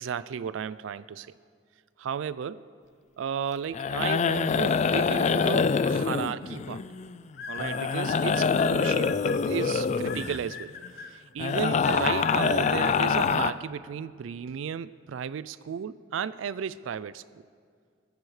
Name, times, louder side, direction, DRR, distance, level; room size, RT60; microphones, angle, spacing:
voice 1, 0.0-1.3 2.0-2.6 3.2-6.8 7.5-10.7 11.0-17.2, right 7 dB, 80° right, 16 dB, 0.3 m, -34 dB
sound 1, 3.7-7.2 7.6-10.5 11.4-13.5, left 5 dB, 35° left, 0.3 m, -25 dB
sound 2, 7.3-9.4 10.1-11.1 11.8-12.9, left 7 dB, 55° left, 0.8 m, -39 dB
20.5 x 14.5 x 3.3 m, 2.1 s
head